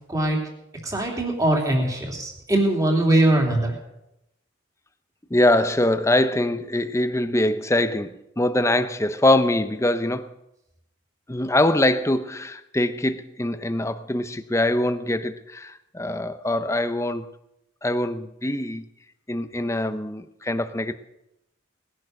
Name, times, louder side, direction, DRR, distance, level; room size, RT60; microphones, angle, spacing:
voice 1, 0.1-0.4 0.8-3.8, right 1 dB, 15° right, 3.0 m, -21 dB
voice 2, 5.3-10.3 11.3-17.3 17.8-18.8 19.3-20.9, left 1 dB, 15° left, 0.7 m, -23 dB
19.5 x 10.5 x 6.5 m
head